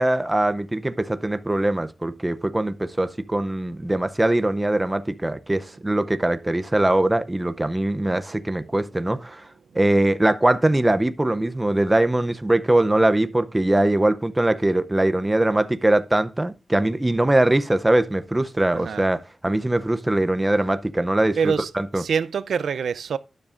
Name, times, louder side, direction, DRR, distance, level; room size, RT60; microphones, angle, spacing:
voice 1, 0.0-9.4 9.7-21.4 21.7-22.0, right 1 dB, 10° right, 0.5 m, -21 dB
voice 2, 8.0-8.6 18.7-19.0 21.4-23.2, right 6 dB, 80° right, 0.4 m, -26 dB
12.0 x 9.8 x 2.5 m
wide cardioid pair, 170°, 0 cm